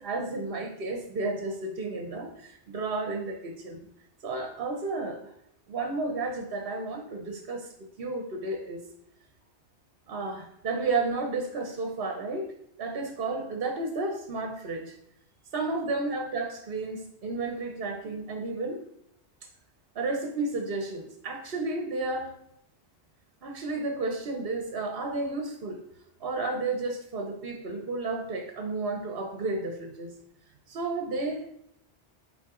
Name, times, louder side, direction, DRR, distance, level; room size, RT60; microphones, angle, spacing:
voice 1, 0.0-3.9 4.2-5.3 5.7-7.7 8.0-8.8 10.1-12.5 12.8-14.9 15.5-18.8 19.9-22.4 23.4-25.8 26.2-30.2 30.7-31.4, right 3 dB, 60° right, 4 dB, 0.9 m, -32 dB
7.5 x 4.1 x 3.6 m, 0.78 s
omnidirectional pair, 1.2 m